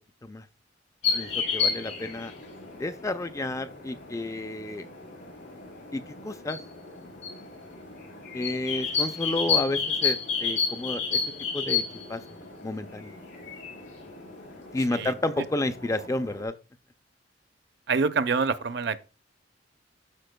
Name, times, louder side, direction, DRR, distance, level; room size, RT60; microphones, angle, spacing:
sound 1, 1.0-16.4, left 5 dB, 85° left, 4.0 m, -32 dB
voice 1, 1.1-2.3 2.8-4.9 5.9-6.6 8.3-11.2 11.5-11.8 12.1-12.2 12.6-13.1 14.7-16.5, left 2 dB, 15° left, 0.4 m, -31 dB
voice 2, 17.9-19.0, right 4 dB, 60° right, 0.6 m, -26 dB
12.5 x 4.3 x 2.2 m
head